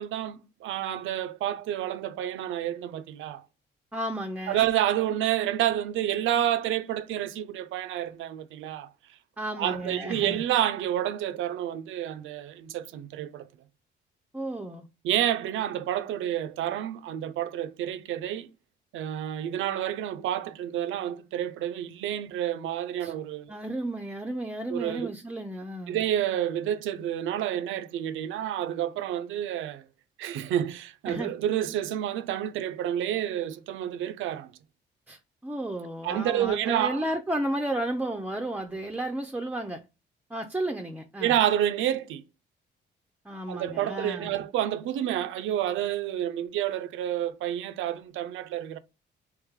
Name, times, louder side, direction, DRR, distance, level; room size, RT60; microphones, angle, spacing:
voice 1, 0.0-3.4 4.5-8.9 9.6-13.5 15.0-18.5 18.9-23.5 24.7-25.1 25.9-29.8 30.2-34.5 36.0-37.0 41.2-42.2 43.5-48.8, right 11 dB, 80° right, 0.5 m, -29 dB
voice 2, 3.9-4.7 9.4-10.4 14.3-14.9 23.0-23.1 23.5-26.0 31.1-31.3 35.1-39.8 40.3-41.4 43.2-44.4, right 1 dB, 10° right, 0.5 m, -33 dB
3.2 x 3.1 x 3.5 m
cardioid pair, 90°, 20 cm